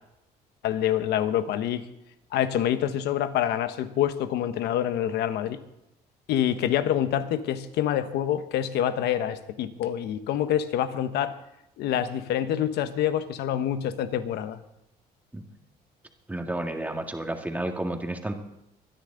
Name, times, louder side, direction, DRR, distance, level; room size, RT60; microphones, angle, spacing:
voice 1, 0.6-1.8 2.3-5.6 6.3-11.4 11.8-14.6, left 10 dB, 80° left, 11 dB, 1.1 m, -26 dB
voice 2, 16.3-18.3, right 1 dB, 10° right, 3 dB, 1.9 m, -31 dB
24.5 x 10.0 x 3.9 m, 0.86 s
cardioid pair, 110°, 17 cm